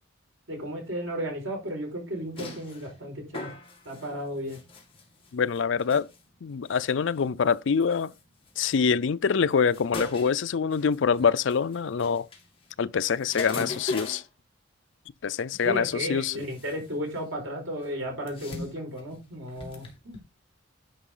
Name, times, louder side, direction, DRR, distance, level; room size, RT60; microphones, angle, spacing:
voice 1, 0.5-3.5 3.8-4.6 15.6-20.2, equal, 80° right, 5.0 m, -34 dB
sound 1, 2.1-14.3 15.5-15.7 16.1-17.4 17.7-20.2, left 2 dB, 25° left, 2.2 m, -41 dB
voice 2, 5.3-6.1 6.4-8.1 8.6-12.3 12.8-14.2 15.2-16.4, left 6 dB, 65° left, 0.4 m, -25 dB
10.0 x 5.6 x 3.8 m
head